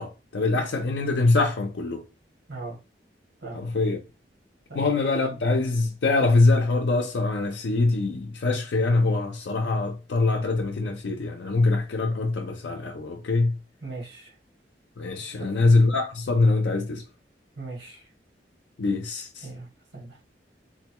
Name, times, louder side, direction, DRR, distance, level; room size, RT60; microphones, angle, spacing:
voice 1, 0.0-2.1 3.5-4.0 4.7-13.6 15.0-17.0 18.8-19.5, left 3 dB, 75° left, 0.5 m, -23 dB
voice 2, 13.8-14.3 15.4-15.7 17.6-18.1 19.4-19.7 19.9-20.2, right 3 dB, 90° right, 1.9 m, -38 dB
3.8 x 2.2 x 2.9 m
head